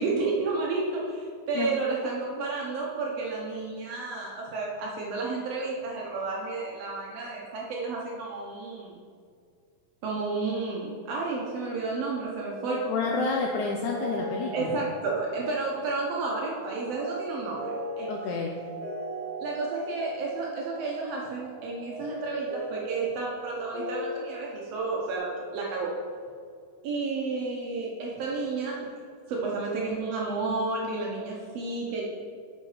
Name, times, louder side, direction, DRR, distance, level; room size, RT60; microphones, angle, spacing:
voice 1, 0.0-9.0 10.0-12.8 14.5-17.6 18.0-18.1 19.4-25.9 26.8-28.9 29.3-32.0, right 3 dB, 75° right, -3 dB, 1.5 m, -31 dB
sound 1, 12.2-25.2, right 1 dB, 55° left, 2.4 m, -39 dB
voice 2, 12.9-14.7 18.1-18.7, left 4 dB, 80° left, 1 dB, 1.7 m, -29 dB
6.8 x 5.7 x 4.8 m, 2.2 s
omnidirectional pair, 4.0 m